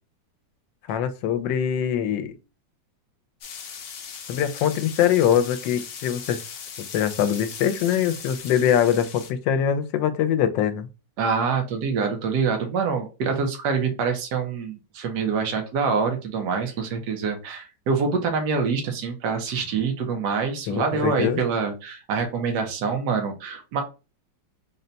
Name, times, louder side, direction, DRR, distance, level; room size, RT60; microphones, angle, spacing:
voice 1, 0.9-2.3 4.3-6.4 6.8-10.9 20.7-21.4, left 9 dB, 85° left, 1.3 m, -23 dB
sound 1, 3.4-9.3, left 6 dB, 65° left, 0.9 m, -39 dB
voice 2, 11.2-23.8, right 5 dB, 70° right, 1.3 m, -25 dB
4.0 x 2.2 x 3.9 m
omnidirectional pair, 1.9 m